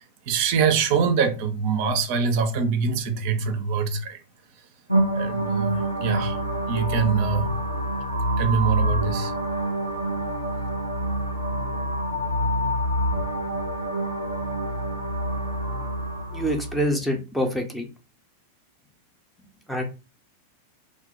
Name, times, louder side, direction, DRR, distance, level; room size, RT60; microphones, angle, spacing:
voice 1, 0.0-4.2 5.1-6.4 6.7-7.5 8.4-9.3, right 5 dB, 45° right, 0.4 m, -24 dB
sound 1, 4.9-16.9, right 1 dB, 90° left, 0.4 m, -27 dB
voice 2, 16.3-17.9 19.7-19.8, equal, 5° left, 0.6 m, -25 dB
2.2 x 2.1 x 2.8 m
figure-of-eight pair, 90°, 0 cm